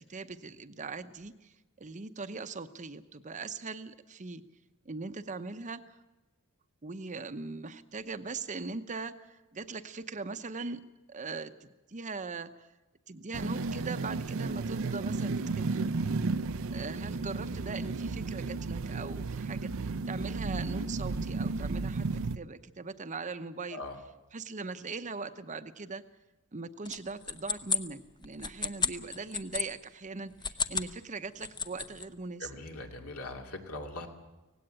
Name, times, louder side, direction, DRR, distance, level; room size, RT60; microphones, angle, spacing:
voice 1, 0.0-4.4 4.8-6.0 6.8-10.8 11.1-12.7 13.1-15.9 16.7-22.1 22.3-23.8 24.3-26.0 26.5-32.5, right 4 dB, 35° right, 10 dB, 0.8 m, -40 dB
sound 1, 13.3-22.4, right 3 dB, 65° right, 0.6 m, -33 dB
sound 2, 26.9-29.7 30.3-30.9 31.3-32.1, left 5 dB, 20° left, 0.7 m, -33 dB
voice 2, 32.4-34.1, left 2 dB, 75° left, 3 dB, 2.6 m, -41 dB
18.0 x 16.5 x 9.0 m, 1.1 s
head